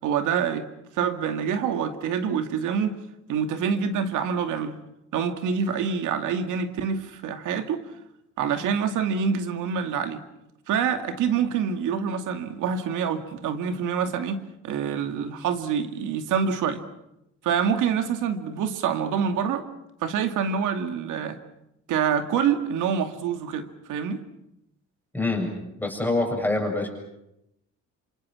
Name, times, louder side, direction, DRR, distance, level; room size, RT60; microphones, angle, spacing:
voice 1, 0.0-0.7 0.9-3.0 3.3-4.8 5.1-7.8 8.4-10.2 10.7-16.8 17.4-19.6 20.0-21.4 21.9-24.2, right 7 dB, 90° right, 7 dB, 2.4 m, -26 dB
voice 2, 25.1-25.5 25.8-26.9, left 2 dB, 5° left, 0 dB, 7.4 m, -25 dB
27.5 x 27.0 x 6.2 m, 0.84 s
cardioid pair, 90°, 30 cm